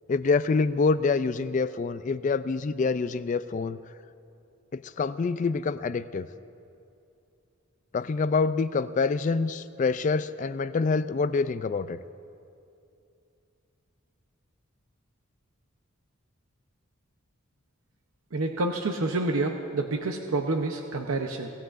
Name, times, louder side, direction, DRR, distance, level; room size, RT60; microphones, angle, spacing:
voice 1, 0.1-3.8 4.7-6.3 7.9-12.0, left 4 dB, 35° left, 14 dB, 0.3 m, -26 dB
voice 2, 18.3-21.5, right 2 dB, 80° right, 3 dB, 0.8 m, -28 dB
25.0 x 17.0 x 2.5 m, 2.6 s
head